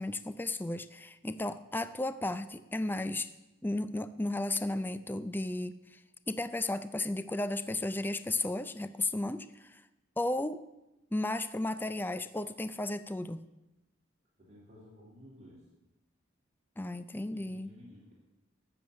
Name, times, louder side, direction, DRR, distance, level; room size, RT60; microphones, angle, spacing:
voice 1, 0.0-3.3 3.6-6.0 6.3-9.8 10.2-10.6 11.1-13.4 16.8-17.7, left 2 dB, 10° left, 13 dB, 0.4 m, -34 dB
voice 2, 14.4-15.7 17.3-18.1, left 1 dB, 35° right, -6 dB, 3.4 m, -54 dB
12.5 x 7.1 x 8.5 m, 0.96 s
head